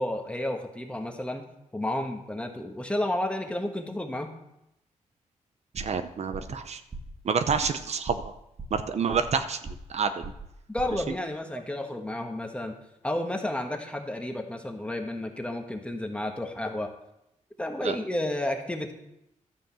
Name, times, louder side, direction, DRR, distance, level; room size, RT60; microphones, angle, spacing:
voice 1, 0.0-1.5 1.7-4.3 10.7-12.7 13.0-16.9 17.6-18.9, left 1 dB, 10° left, 4 dB, 1.4 m, -31 dB
voice 2, 5.7-6.8 7.2-8.3 8.7-9.6 9.9-10.1 17.8-18.0, right 6 dB, 60° right, 9 dB, 0.7 m, -28 dB
sound 1, 5.8-6.0 6.3-6.6 6.9-7.2 7.5-7.7 8.1-8.3 8.6-9.4 9.6-10.0 10.2-10.5 10.8-11.1, right 3 dB, 35° right, 1.6 m, -40 dB
12.0 x 5.1 x 7.5 m, 0.85 s
wide cardioid pair, 110°, 13 cm